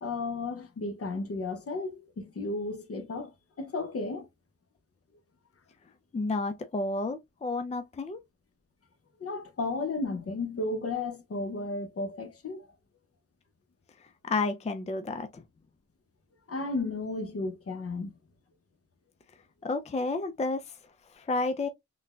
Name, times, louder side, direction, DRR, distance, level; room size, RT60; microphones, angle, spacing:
voice 1, 0.0-3.3 3.6-4.3 9.2-12.7 16.5-18.1, left 3 dB, 50° left, 0.8 m, -33 dB
voice 2, 6.1-8.2 14.2-15.4 19.6-20.6 21.2-21.7, left 3 dB, 25° left, 0.4 m, -31 dB
3.9 x 2.1 x 2.3 m
cardioid pair, 70°, 30 cm